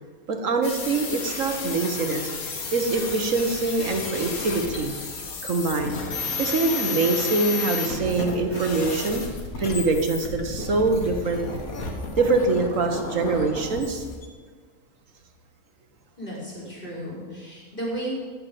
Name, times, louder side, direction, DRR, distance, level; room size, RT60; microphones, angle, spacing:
voice 1, 0.3-2.3 2.7-4.9 5.4-6.0 6.4-9.2 9.6-11.4 12.2-14.0, right 3 dB, 65° right, 5 dB, 1.8 m, -24 dB
sound 1, 0.6-14.3, left 4 dB, 80° left, 2.1 m, -32 dB
voice 2, 16.2-18.2, right 1 dB, 40° left, -4 dB, 4.9 m, -33 dB
15.5 x 6.7 x 7.7 m, 1.5 s
omnidirectional pair, 1.5 m